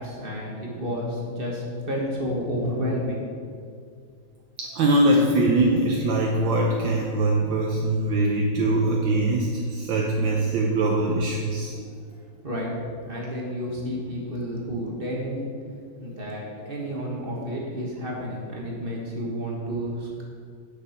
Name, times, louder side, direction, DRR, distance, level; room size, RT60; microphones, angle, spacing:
voice 1, 0.0-3.3 12.4-12.8 13.0-15.4 16.0-20.2, equal, 30° right, -3 dB, 1.4 m, -30 dB
voice 2, 4.6-11.9, right 2 dB, 70° right, -1 dB, 1.5 m, -22 dB
9.7 x 6.8 x 4.3 m, 2.2 s
omnidirectional pair, 2.2 m